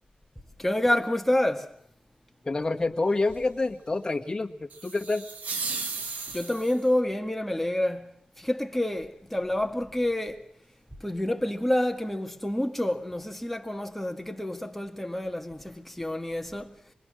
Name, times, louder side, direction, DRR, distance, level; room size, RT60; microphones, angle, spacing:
voice 1, 0.6-1.8 6.3-8.1 8.4-10.4 10.9-16.7, left 1 dB, 5° left, 1.8 m, -28 dB
voice 2, 2.4-5.3, left 3 dB, 30° left, 1.8 m, -28 dB
sound 1, 4.7-6.9, right 4 dB, 80° right, 1.6 m, -35 dB
25.5 x 20.0 x 6.4 m
cardioid pair, 70°, 3 cm